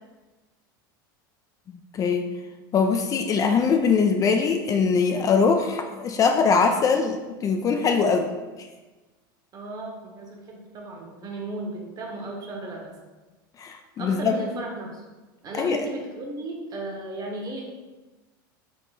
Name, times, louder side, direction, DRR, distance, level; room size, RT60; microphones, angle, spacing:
voice 1, 1.9-2.3 2.7-8.7 13.6-14.4 15.5-15.8, left 5 dB, 30° left, 5 dB, 0.4 m, -22 dB
voice 2, 9.5-12.9 14.0-15.0 15.4-17.6, right 2 dB, 35° right, 0 dB, 1.1 m, -35 dB
3.7 x 3.2 x 4.0 m, 1.2 s
hypercardioid pair, 105°, 11 cm